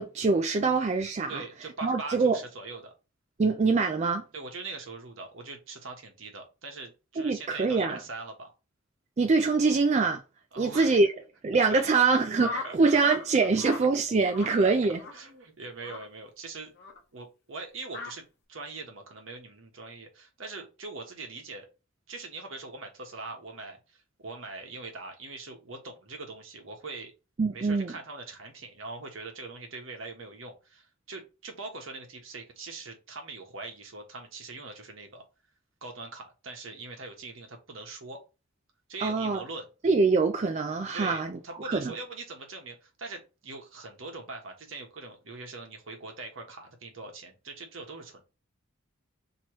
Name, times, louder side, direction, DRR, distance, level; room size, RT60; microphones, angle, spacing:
voice 1, 0.0-1.4 1.8-2.4 3.4-4.2 7.2-8.0 9.2-10.2 10.6-11.1 11.4-15.0 27.4-27.9 39.0-39.4 39.8-41.4 41.6-41.9, right 4 dB, 35° right, 0.3 m, -24 dB
voice 2, 1.3-2.9 4.3-8.5 10.5-10.9 11.7-11.8 12.6-13.0 13.6-13.7 14.4-14.7 15.1-16.7 17.1-18.2 18.5-21.7 22.1-27.1 27.5-35.2 35.8-38.2 38.9-39.7 40.9-48.2, right 3 dB, 70° right, 1.1 m, -42 dB
sound 1, 12.4-13.2 13.5-13.8 14.3-14.6 14.9-15.2 15.8-16.0 16.8-17.0 17.9-18.1, left 3 dB, 50° left, 0.9 m, -38 dB
3.0 x 3.0 x 4.5 m
head